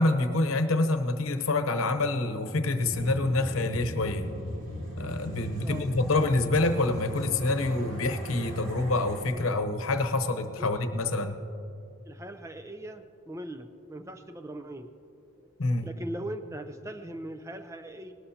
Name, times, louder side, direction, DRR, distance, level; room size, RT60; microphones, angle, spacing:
voice 1, 0.0-4.3 5.0-11.4 15.6-15.9, left 2 dB, 85° left, 8 dB, 0.9 m, -27 dB
sound 1, 2.8-10.9, equal, 75° right, 2.5 m, -39 dB
voice 2, 12.1-14.9 15.4-15.5 15.8-18.1, right 1 dB, 15° right, 8 dB, 0.5 m, -40 dB
19.5 x 12.5 x 2.8 m, 2.5 s
head